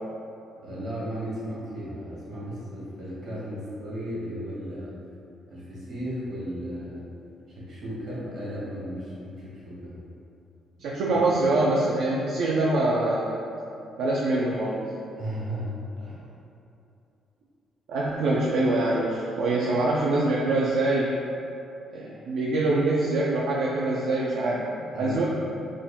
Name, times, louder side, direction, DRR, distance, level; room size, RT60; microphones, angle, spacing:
voice 1, 0.6-4.9 5.5-7.0 7.6-10.0 11.1-11.2 15.2-16.3 24.9-25.3, equal, 65° right, -7 dB, 1.3 m, -35 dB
voice 2, 10.8-13.3 14.0-14.9 17.9-21.1 21.9-25.2, right 2 dB, 85° right, -5 dB, 0.4 m, -24 dB
3.7 x 2.2 x 3.5 m, 2.7 s
cardioid pair, 90°, 0 cm